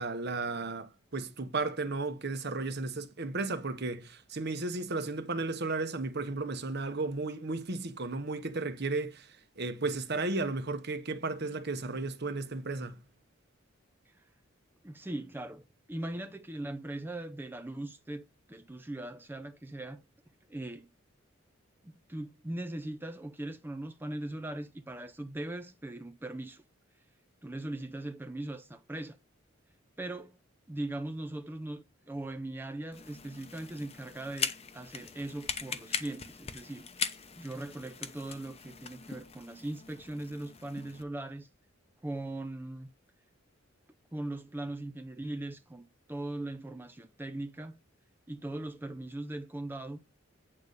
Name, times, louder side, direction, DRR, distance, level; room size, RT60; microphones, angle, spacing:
voice 1, 0.0-9.3 9.6-13.0, right 3 dB, 55° right, 1.0 m, -34 dB
voice 2, 14.8-20.0 20.5-20.9 21.8-26.6 27.4-29.2 30.0-30.4 30.7-36.8 37.4-41.5 42.0-42.9 44.1-47.8 48.3-50.0, right 1 dB, 10° right, 0.5 m, -40 dB
sound 1, 32.9-41.0, left 6 dB, 30° left, 0.8 m, -40 dB
8.8 x 4.0 x 6.6 m
head